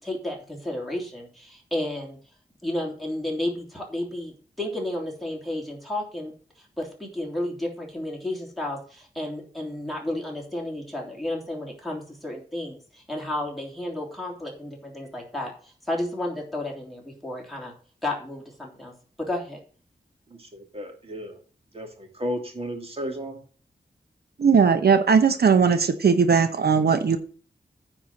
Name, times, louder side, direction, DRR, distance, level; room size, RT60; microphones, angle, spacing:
voice 1, 0.0-2.2 2.6-6.3 6.6-17.7 18.0-18.9 19.2-19.6, left 1 dB, ahead, -2 dB, 3.3 m, -32 dB
voice 2, 20.3-21.4 21.7-23.4, equal, 35° right, 3 dB, 2.4 m, -34 dB
voice 3, 24.4-27.2, right 6 dB, 70° right, 8 dB, 1.0 m, -18 dB
9.7 x 4.5 x 7.6 m, 0.42 s
wide cardioid pair, 125°, 17 cm